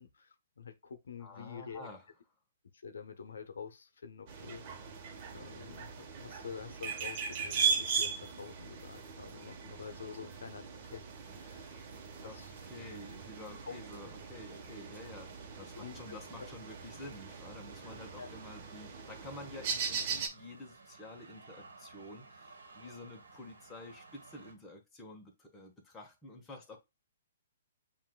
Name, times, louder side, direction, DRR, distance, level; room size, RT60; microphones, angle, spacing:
voice 1, 0.0-1.9 2.7-4.6 5.3-11.8 12.2-12.5 13.7-13.8 14.0-14.1 15.8-16.2 18.2-18.3, left 6 dB, 80° left, 0.7 m, -47 dB
voice 2, 1.2-2.1 12.2-26.8, left 2 dB, 15° left, 1.2 m, -50 dB
sound 1, 4.3-20.3, right 6 dB, 40° right, 1.1 m, -39 dB
sound 2, 12.0-24.5, right 3 dB, 85° right, 1.3 m, -57 dB
7.2 x 2.6 x 2.3 m
hypercardioid pair, 140°, 0 cm